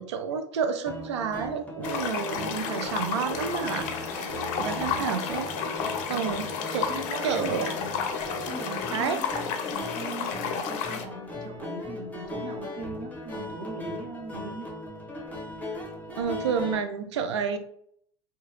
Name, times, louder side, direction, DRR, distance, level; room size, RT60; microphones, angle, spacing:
voice 1, 0.0-5.5 6.1-6.8 7.2-7.7 8.9-9.2 16.2-17.6, right 6 dB, 85° right, 8 dB, 0.4 m, -30 dB
sound 1, 0.9-16.8, left 1 dB, 10° left, 1.1 m, -38 dB
sound 2, 1.8-11.1, left 6 dB, 60° left, 0.5 m, -32 dB
voice 2, 4.7-5.2 6.1-6.4 6.9-8.0 8.4-9.2 9.7-14.7, right 3 dB, 55° right, 2 dB, 0.7 m, -40 dB
2.7 x 2.2 x 3.0 m, 0.66 s
hypercardioid pair, 70°, 14 cm